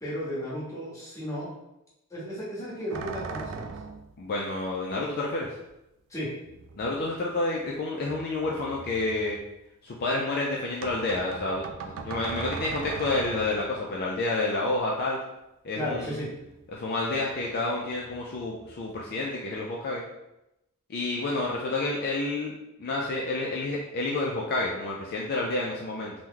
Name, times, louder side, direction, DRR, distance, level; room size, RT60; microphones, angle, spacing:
voice 1, 0.0-1.5 2.1-3.7 6.1-6.3 15.7-16.3, equal, 15° left, -8 dB, 1.0 m, -34 dB
sound 1, 2.9-4.2 5.7-5.8 6.4-7.7 8.0-9.5 10.8-13.8 15.9-16.8 17.0-17.5 17.9-19.0, right 5 dB, 60° right, 0.3 m, -40 dB
voice 2, 4.2-5.6 6.8-9.4 9.8-15.2 15.6-16.2 16.7-20.0 20.9-22.5 22.8-26.1, left 2 dB, 45° left, -3 dB, 0.4 m, -29 dB
3.0 x 2.1 x 3.6 m, 0.89 s
head